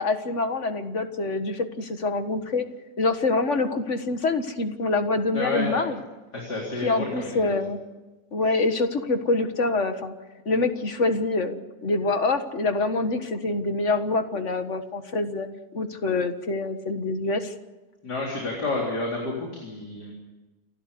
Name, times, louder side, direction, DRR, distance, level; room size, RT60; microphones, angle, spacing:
voice 1, 0.0-2.6 3.0-6.0 6.8-7.8 8.3-10.1 10.5-15.5 15.7-17.5, left 3 dB, 45° left, 8 dB, 1.8 m, -25 dB
voice 2, 5.3-5.9 6.3-7.5 18.0-20.1, left 2 dB, 75° left, -2 dB, 4.4 m, -30 dB
29.0 x 12.5 x 8.4 m, 1.2 s
omnidirectional pair, 1.8 m